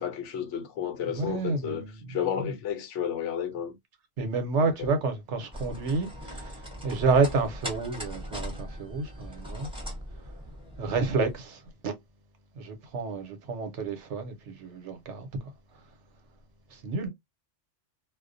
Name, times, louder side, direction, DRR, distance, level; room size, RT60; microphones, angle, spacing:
voice 1, 0.0-3.8 4.8-4.9, left 9 dB, 90° left, 1.0 m, -32 dB
voice 2, 1.1-2.0 2.4-2.5 4.2-9.7 10.8-11.9 12.6-15.3 16.7-17.1, right 4 dB, 75° right, 1.0 m, -29 dB
sound 1, 5.5-11.4, equal, 5° right, 0.8 m, -40 dB
2.4 x 2.1 x 2.5 m
omnidirectional pair, 1.2 m